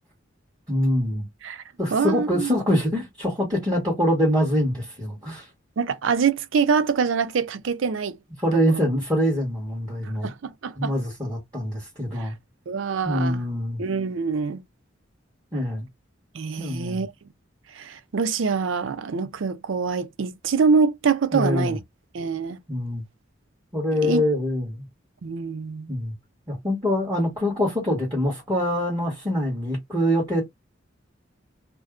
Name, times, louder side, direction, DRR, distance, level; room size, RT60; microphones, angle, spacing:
voice 1, 0.7-1.3 1.8-5.5 8.4-10.3 10.8-12.3 13.0-13.8 15.5-15.8 16.6-17.1 21.3-21.8 22.7-23.0 23.7-24.9 25.9-26.1 26.5-30.4, equal, 20° right, 1.2 m, -24 dB
voice 2, 1.9-2.5 5.8-8.2 8.7-8.8 10.2-10.9 12.1-12.3 12.7-13.4 13.8-14.6 16.3-17.1 17.8-21.8 22.1-22.6 24.0-24.2 25.2-25.9, right 5 dB, 70° right, 0.4 m, -25 dB
2.6 x 2.1 x 3.5 m
head